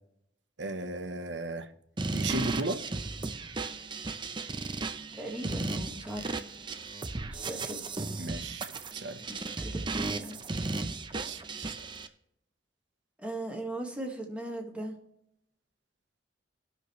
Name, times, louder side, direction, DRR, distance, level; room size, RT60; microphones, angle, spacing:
voice 1, 0.6-1.7 2.1-2.8 8.2-8.7 8.9-9.2 11.2-11.7, right 2 dB, 80° right, 9 dB, 1.0 m, -35 dB
sound 1, 2.0-12.1, right 3 dB, 25° right, 0.7 m, -35 dB
voice 2, 5.1-6.4 7.3-7.8 9.3-10.4 13.2-15.0, right 1 dB, 5° right, 0 dB, 1.7 m, -39 dB
19.0 x 6.5 x 3.1 m, 0.77 s
head